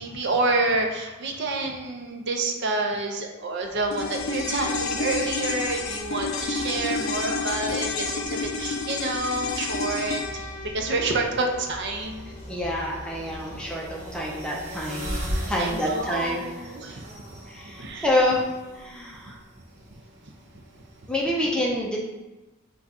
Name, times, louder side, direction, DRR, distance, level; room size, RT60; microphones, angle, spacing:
voice 1, 0.0-12.4 13.5-13.6 15.6-18.2 19.9-20.0 20.5-20.6 21.0-21.1, right 2 dB, 55° right, 3 dB, 0.6 m, -29 dB
sound 1, 3.5-18.3, equal, 30° left, 0.9 m, -45 dB
sound 2, 3.9-12.4 12.7-12.8, left 4 dB, 75° left, 0.5 m, -30 dB
sound 3, 11.2-21.2, equal, 35° right, 1.0 m, -39 dB
voice 2, 12.5-15.2 15.5-16.4 17.5-18.5 18.7-19.4 21.1-22.0, left 1 dB, 5° left, -3 dB, 0.5 m, -27 dB
5.6 x 2.3 x 3.6 m, 1.1 s
head